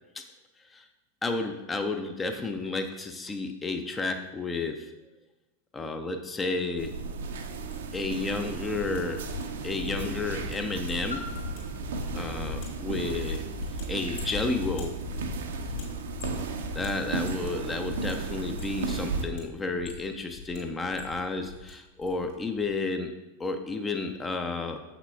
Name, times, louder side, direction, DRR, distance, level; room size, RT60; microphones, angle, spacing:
voice 1, 1.2-4.9 5.7-7.0 7.9-9.3 9.6-11.3 12.1-13.4 13.9-15.0 16.7-24.8, left 3 dB, 15° left, 6 dB, 0.4 m, -32 dB
sound 1, 6.8-19.3, right 4 dB, 60° right, 0.5 m, -35 dB
sound 2, 7.7-8.4 8.7-17.6 17.8-18.1 18.4-19.4 19.7-20.6 20.8-21.7 22.0-22.3 22.6-22.8, left 5 dB, 50° left, 2.0 m, -40 dB
Piano, 11.1-16.5 17.3-17.4, left 3 dB, 85° left, 1.0 m, -48 dB
7.2 x 5.8 x 2.3 m, 1.1 s
figure-of-eight pair, 90°, 0 cm